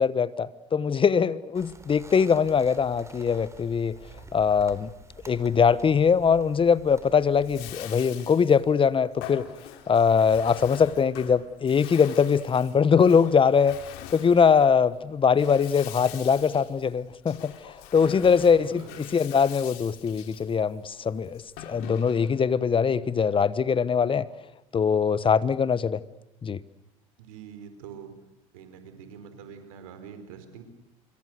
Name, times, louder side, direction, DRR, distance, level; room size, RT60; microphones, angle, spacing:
voice 1, 0.0-4.0 4.3-4.9 5.3-9.5 9.9-13.8 14.1-17.5 17.9-24.3 24.7-26.0 26.4-26.6, left 6 dB, 30° left, 1.2 m, -22 dB
sound 1, 1.5-7.9, right 3 dB, 15° right, 4.3 m, -49 dB
Bathtub (filling or washing), 7.3-22.5, left 11 dB, 70° left, 3.3 m, -44 dB
voice 2, 17.9-19.0 27.2-28.2 28.5-30.6, right 7 dB, 85° right, 4.5 m, -44 dB
25.5 x 23.5 x 8.1 m
hypercardioid pair, 75°, 17 cm